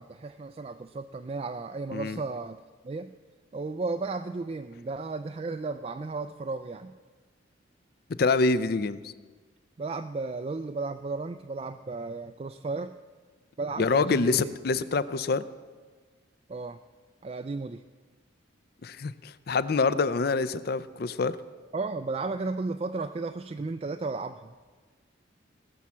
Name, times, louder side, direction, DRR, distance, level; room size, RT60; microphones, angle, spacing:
voice 1, 0.0-2.6 2.8-3.1 3.5-6.9 9.8-12.9 13.6-14.6 16.5-16.8 17.2-17.8 21.7-24.5, right 3 dB, 30° right, 7 dB, 0.3 m, -34 dB
voice 2, 8.2-9.1 13.8-15.4 18.8-21.4, left 4 dB, 50° left, 15 dB, 0.4 m, -26 dB
18.5 x 7.0 x 6.2 m, 1.4 s
head